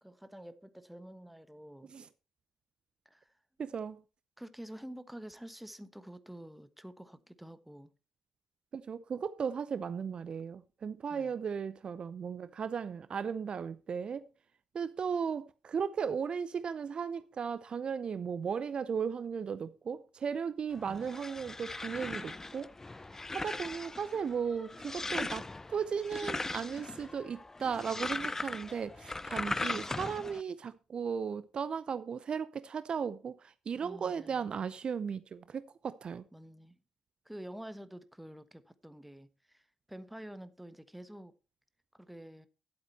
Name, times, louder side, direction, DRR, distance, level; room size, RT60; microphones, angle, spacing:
voice 1, 0.0-1.9 3.0-3.3 4.4-7.9 11.1-11.3 20.8-21.1 33.8-34.5 36.3-36.7 37.2-41.3 42.0-42.5, right 1 dB, 5° right, 1.2 m, -48 dB
voice 2, 3.6-4.0 8.7-14.3 14.7-22.7 23.1-36.2, right 6 dB, 50° right, 0.6 m, -36 dB
sound 1, 20.7-30.4, left 2 dB, 20° left, 0.5 m, -39 dB
11.5 x 8.1 x 4.2 m
hypercardioid pair, 45°, 2 cm